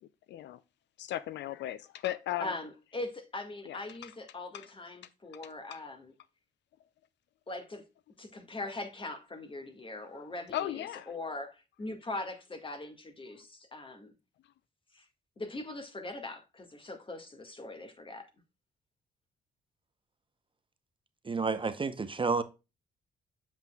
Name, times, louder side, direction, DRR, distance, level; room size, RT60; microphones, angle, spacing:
voice 1, 0.3-0.6 1.0-2.5 3.7-4.1 4.5-4.7 5.7-5.8 10.1-10.2 10.5-11.1 13.3-13.4, left 13 dB, 70° left, 0.4 m, -37 dB
voice 2, 2.4-6.1 7.5-7.8 8.2-14.1 14.9-15.0 15.4-18.3, left 2 dB, 25° left, 1.8 m, -41 dB
voice 3, 21.2-22.4, right 4 dB, 25° right, 0.7 m, -30 dB
7.2 x 5.9 x 2.3 m
supercardioid pair, 65°, 19 cm